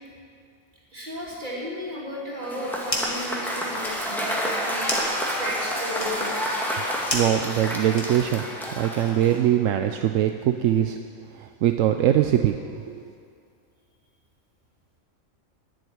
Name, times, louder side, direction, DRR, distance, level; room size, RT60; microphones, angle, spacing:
voice 1, 0.9-6.6, left 1 dB, 35° right, -5 dB, 3.0 m, -34 dB
sound 1, 2.4-3.3 3.6-8.5, left 1 dB, 25° left, 1.8 m, -33 dB
Cheering / Applause / Crowd, 2.4-9.5, equal, ahead, 1.8 m, -29 dB
voice 2, 7.1-11.0 11.4-12.6 12.9-13.0, right 11 dB, 80° right, 6 dB, 1.0 m, -22 dB
11.5 x 7.8 x 9.5 m, 2.3 s
omnidirectional pair, 1.3 m